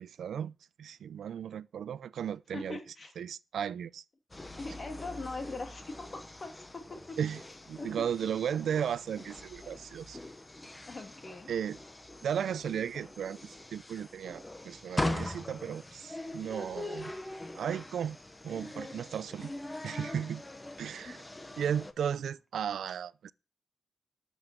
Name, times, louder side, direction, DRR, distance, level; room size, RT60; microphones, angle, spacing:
voice 1, 0.0-2.8 3.2-4.0 7.2-7.4 7.7-10.2 11.5-11.8 12.2-17.1 17.5-18.2 18.4-19.5 19.8-20.4 20.8-21.2 21.6-23.3, right 8 dB, 90° right, 0.5 m, -35 dB
voice 2, 2.5-3.1 4.6-7.2 7.8-8.0 10.9-11.5 21.1-21.3, left 3 dB, 30° left, 2.2 m, -41 dB
sound 1, 4.3-21.9, left 1 dB, 15° left, 1.0 m, -42 dB
12.5 x 6.9 x 7.3 m
wide cardioid pair, 160°, 0 cm